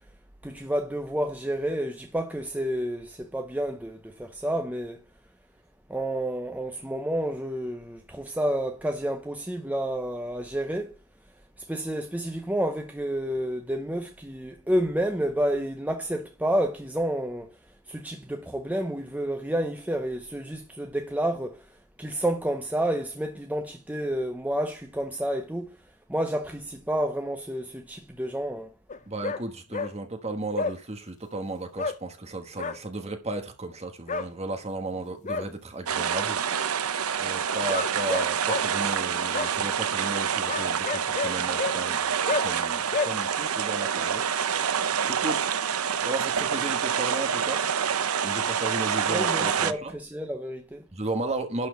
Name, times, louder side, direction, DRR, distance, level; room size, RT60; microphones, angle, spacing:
voice 1, 0.4-5.0 5.9-11.0 11.7-17.5 17.9-25.8 26.1-28.7 49.1-50.8, right 1 dB, 5° right, 0.7 m, -30 dB
sound 1, 28.9-29.4 29.7-29.9 30.6-30.7 31.8-32.0 32.6-32.8 34.1-34.3 35.0-35.5 37.7-38.6 39.3-39.5 40.5-41.8 42.3-42.4 42.9-43.1, left 4 dB, 35° left, 0.6 m, -29 dB
voice 2, 29.1-36.4 37.2-44.3 44.6-44.7 45.1-45.4 46.0-47.6 48.2-49.9 50.9-51.7, right 2 dB, 30° right, 1.2 m, -34 dB
sound 2, 35.9-49.7, right 7 dB, 75° right, 0.7 m, -27 dB
11.5 x 4.3 x 6.9 m
head